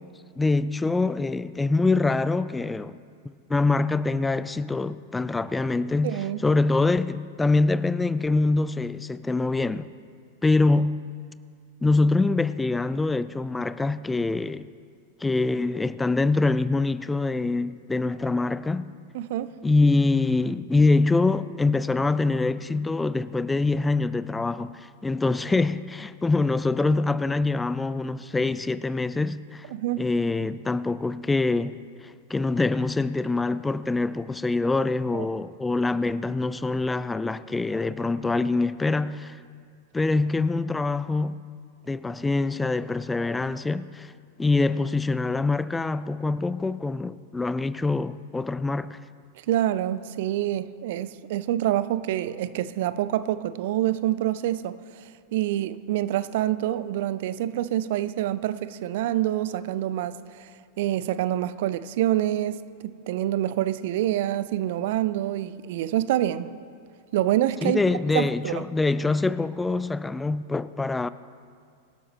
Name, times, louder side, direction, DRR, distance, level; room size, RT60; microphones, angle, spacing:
voice 1, 0.4-3.0 3.5-9.9 10.4-11.1 11.8-14.7 15.2-18.9 19.6-29.7 30.0-39.4 39.9-41.4 41.9-44.1 44.4-49.0 67.6-71.1, left 3 dB, 10° left, 0.3 m, -24 dB
voice 2, 6.0-6.4 19.1-19.5 29.7-30.0 35.1-35.3 49.5-54.7 55.3-60.5 60.8-66.5 67.1-67.8 68.1-68.6, right 13 dB, 55° right, 0.5 m, -26 dB
24.0 x 12.0 x 3.1 m
figure-of-eight pair, 90°, 0 cm